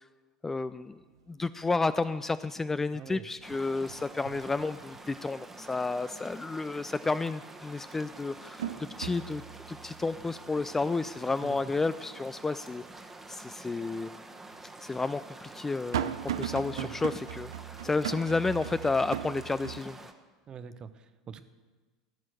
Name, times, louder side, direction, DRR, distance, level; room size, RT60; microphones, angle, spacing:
voice 1, 0.4-1.0 1.3-8.7 9.0-9.4 9.7-12.8 13.3-14.1 14.8-17.5 17.8-20.0, left 3 dB, 10° left, 13 dB, 0.3 m, -31 dB
sound 1, 0.6-0.7 1.1-1.7 2.0-2.8 3.1-5.4 5.8-5.9 7.3-7.4 7.9-13.1 13.5-13.6 14.5-19.8, right 10 dB, 65° right, 0.5 m, -39 dB
voice 2, 2.9-3.3 11.4-11.6 16.8-16.9 20.5-21.4, right 7 dB, 30° right, 12 dB, 0.8 m, -43 dB
sound 2, 3.4-20.1, right 2 dB, 10° right, 1.1 m, -48 dB
15.5 x 6.2 x 8.9 m, 1.3 s
figure-of-eight pair, 75°, 3 cm